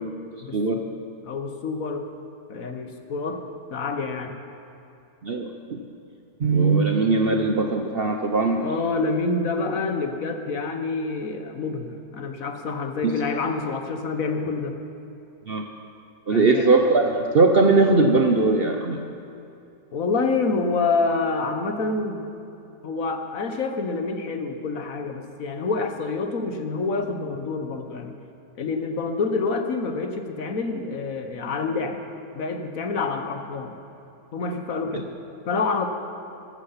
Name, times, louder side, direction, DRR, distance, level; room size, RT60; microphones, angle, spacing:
voice 1, 0.4-0.8 1.2-2.0 2.5-3.4 3.7-4.4 8.6-14.7 16.3-16.7 19.9-22.3 22.8-28.2 28.6-32.0 32.3-33.8 34.3-35.1 35.4-35.9, left 4 dB, 60° left, 5 dB, 1.4 m, -27 dB
voice 2, 5.2-5.8 6.4-8.7 13.0-13.1 15.5-15.6 16.3-19.0, right 3 dB, 50° right, 3 dB, 0.8 m, -20 dB
14.5 x 12.5 x 5.7 m, 2.8 s
omnidirectional pair, 1.7 m